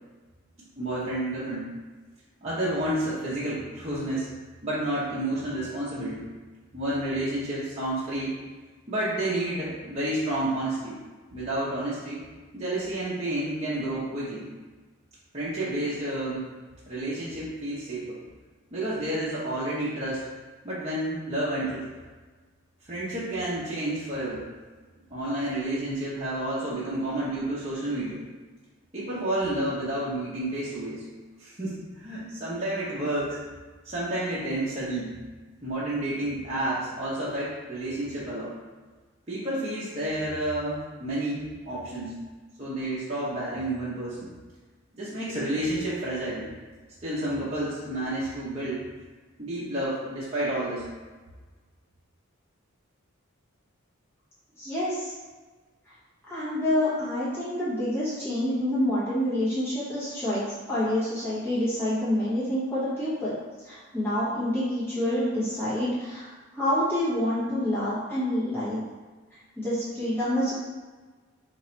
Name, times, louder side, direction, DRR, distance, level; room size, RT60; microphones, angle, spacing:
voice 1, 0.8-1.6 2.4-4.3 4.6-6.3 6.7-8.3 8.9-11.0 11.3-12.2 12.5-14.4 15.3-16.4 16.9-18.2 18.7-20.2 20.6-21.8 22.9-24.4 25.1-28.2 28.9-31.0 31.4-33.4 33.8-35.1 35.6-38.5 39.3-42.1 42.6-44.3 44.9-46.4 47.0-48.8 49.4-50.8, right 1 dB, 30° right, -10 dB, 0.8 m, -30 dB
voice 2, 54.6-55.1 55.9-56.0 56.3-63.4 63.6-68.8 69.6-70.5, left 1 dB, 10° left, -12 dB, 1.1 m, -27 dB
2.9 x 2.8 x 4.3 m, 1.3 s
head